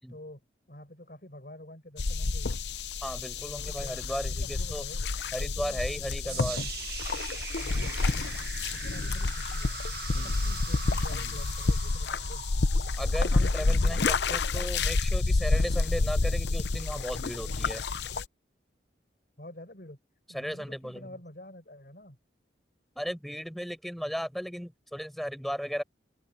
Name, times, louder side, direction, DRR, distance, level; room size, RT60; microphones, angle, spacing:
voice 1, 0.1-0.4 0.7-2.6 3.5-4.0 4.3-5.0 5.3-6.5 7.5-9.8 10.1-12.5 19.4-20.0 20.3-22.2, left 1 dB, 55° left, 4.9 m, -48 dB
sound 1, 2.0-18.2, left 3 dB, 70° left, 0.7 m, -29 dB
voice 2, 3.0-4.8 5.3-6.6 10.1-10.3 13.0-17.8 20.3-21.1 23.0-25.8, equal, ahead, 5.7 m, -36 dB
sound 2, 6.3-14.3, right 7 dB, 60° right, 1.5 m, -42 dB
head